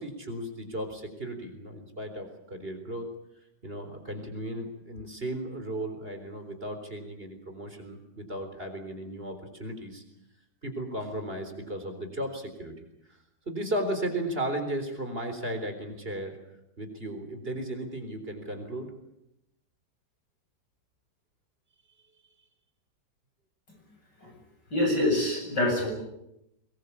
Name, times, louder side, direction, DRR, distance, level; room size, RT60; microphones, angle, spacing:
voice 1, 0.0-3.1 3.6-10.0 10.6-12.7 13.5-16.4 16.8-18.9, right 1 dB, 30° right, 6 dB, 4.1 m, -35 dB
voice 2, 24.7-25.9, left 1 dB, 75° left, 1 dB, 8.6 m, -25 dB
23.5 x 21.5 x 8.5 m, 0.84 s
omnidirectional pair, 1.9 m